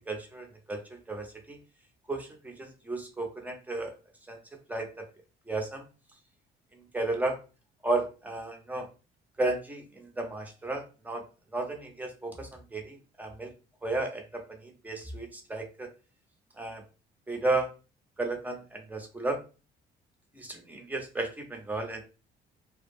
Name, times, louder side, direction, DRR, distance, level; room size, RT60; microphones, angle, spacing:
voice 1, 0.1-1.6 2.1-3.9 4.3-4.4 4.7-5.1 5.5-5.8 6.7-7.4 7.8-8.9 9.4-11.3 11.5-13.5 13.8-15.9 16.6-16.8 17.3-17.7 18.2-19.4 20.3-22.0, right 2 dB, 10° right, 3 dB, 0.7 m, -33 dB
2.2 x 2.0 x 3.3 m, 0.33 s
cardioid pair, 110°, 17 cm